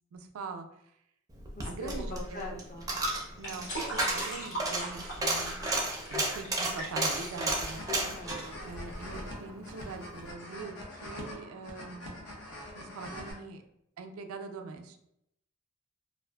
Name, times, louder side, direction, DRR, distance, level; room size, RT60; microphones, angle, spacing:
voice 1, 0.1-0.7 1.6-2.6 3.4-5.7 6.1-7.8 8.6-12.3 12.7-13.6 14.0-15.0, right 4 dB, 85° right, 6 dB, 0.3 m, -43 dB
Coin (dropping), 1.4-9.8 10.1-10.2, right 2 dB, 15° right, 0.4 m, -33 dB
voice 2, 1.6-2.9 8.0-8.5, left 2 dB, 40° left, -1 dB, 0.5 m, -42 dB
sound 1, 1.9-8.9, right 1 dB, 60° left, 1.0 m, -40 dB
sound 2, 7.3-13.3, left 1 dB, 85° left, 0.6 m, -44 dB
2.5 x 2.4 x 2.2 m, 0.77 s
head